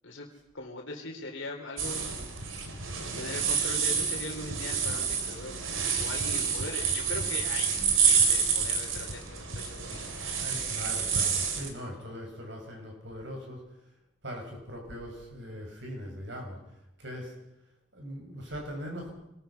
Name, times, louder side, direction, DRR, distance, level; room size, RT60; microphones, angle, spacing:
voice 1, 0.5-2.0 3.0-5.6 6.0-7.7 8.0-10.2, left 2 dB, 75° left, 1 dB, 3.3 m, -40 dB
sound 1, 1.8-11.7, right 6 dB, 90° right, 3.3 m, -28 dB
voice 2, 10.4-13.6 14.2-16.6 17.0-17.3 17.9-19.1, equal, 65° right, 1 dB, 6.7 m, -40 dB
25.5 x 20.5 x 5.8 m, 0.91 s
head